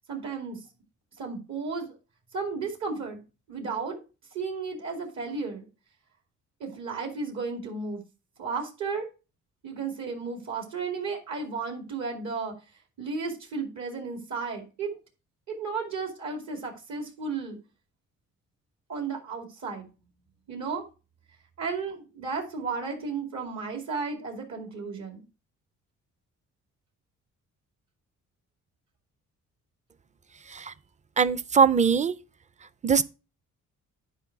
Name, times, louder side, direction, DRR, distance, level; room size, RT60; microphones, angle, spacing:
voice 1, 0.1-0.6 1.2-1.9 2.3-3.2 3.5-4.0 4.3-5.6 6.6-8.0 8.4-9.1 9.6-12.6 13.0-15.0 15.5-17.6 18.9-19.9 20.5-20.8 21.6-25.2, right 4 dB, 65° right, 2.5 m, -33 dB
voice 2, 31.2-32.2 32.8-33.0, right 6 dB, 25° right, 0.5 m, -21 dB
10.0 x 4.8 x 4.6 m
cardioid pair, 90°, 30 cm